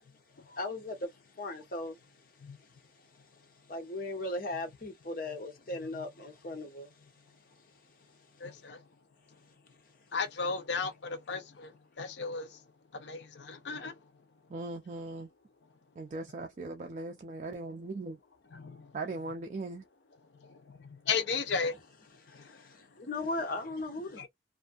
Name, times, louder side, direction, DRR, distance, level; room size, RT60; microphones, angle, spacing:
voice 1, 0.5-1.1 1.4-2.0 3.7-6.9 22.3-24.3, left 2 dB, 50° left, 1.0 m, -37 dB
voice 2, 8.4-8.8 10.1-11.7 12.0-12.6 12.9-13.9 18.5-18.9 20.7-20.8 21.1-21.8 22.3-22.6 24.2-24.3, left 5 dB, 70° left, 0.6 m, -35 dB
voice 3, 14.5-15.3 16.0-18.2 18.9-19.8, right 2 dB, 40° right, 0.4 m, -39 dB
2.6 x 2.5 x 2.3 m
head